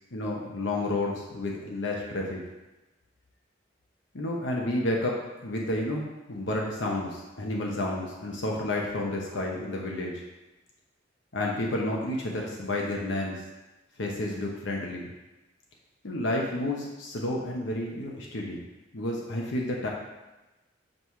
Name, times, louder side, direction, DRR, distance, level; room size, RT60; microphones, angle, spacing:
voice 1, 0.1-2.4 4.1-10.2 11.3-13.4 14.0-15.1 16.0-18.6 18.9-19.9, left 1 dB, 75° left, -2 dB, 0.9 m, -30 dB
7.7 x 3.2 x 5.7 m, 1.1 s
head